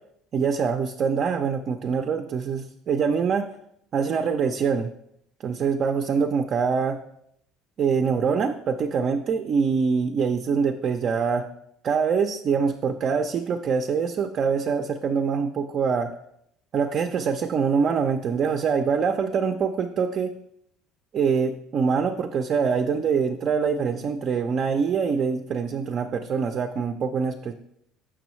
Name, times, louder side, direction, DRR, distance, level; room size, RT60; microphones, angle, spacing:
voice 1, 0.3-3.5 3.9-4.9 5.4-7.0 7.8-11.5 11.8-16.1 16.7-20.3 21.1-27.5, right 6 dB, 50° right, 6 dB, 0.5 m, -24 dB
6.1 x 6.1 x 3.1 m, 0.74 s
supercardioid pair, 90°, 0 cm